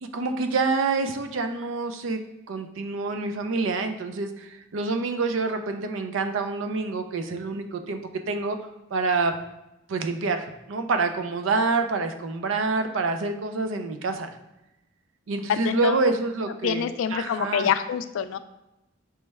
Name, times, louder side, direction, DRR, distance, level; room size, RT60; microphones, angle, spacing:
voice 1, 0.0-2.2 2.5-8.0 8.3-8.6 8.9-9.3 9.9-14.3 15.3-17.7, right 3 dB, 75° right, 7 dB, 0.4 m, -27 dB
voice 2, 15.5-16.1 16.5-18.4, left 8 dB, 75° left, 11 dB, 0.3 m, -26 dB
4.5 x 3.1 x 3.3 m, 0.94 s
head